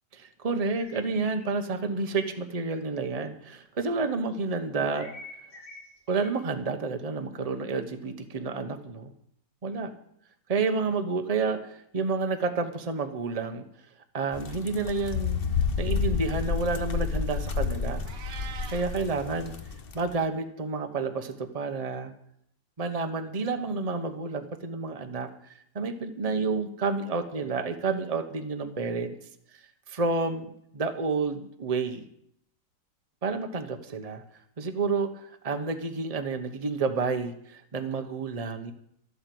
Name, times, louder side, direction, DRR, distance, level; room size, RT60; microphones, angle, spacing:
voice 1, 0.1-5.1 6.1-9.1 9.6-9.9 10.5-13.6 14.1-15.4 15.8-18.1 18.7-19.5 19.9-22.1 22.8-25.3 25.7-29.1 29.9-32.0 33.2-34.2 34.6-38.7, right 4 dB, 25° right, 7 dB, 1.0 m, -30 dB
sound 1, 0.8-2.4 4.9-6.3, left 2 dB, 75° left, 4.4 m, -47 dB
sound 2, 14.3-20.0, left 5 dB, 40° left, 0.9 m, -30 dB
Meow, 18.1-18.9, right 7 dB, 75° right, 1.7 m, -42 dB
13.0 x 8.8 x 7.8 m, 0.71 s
omnidirectional pair, 1.9 m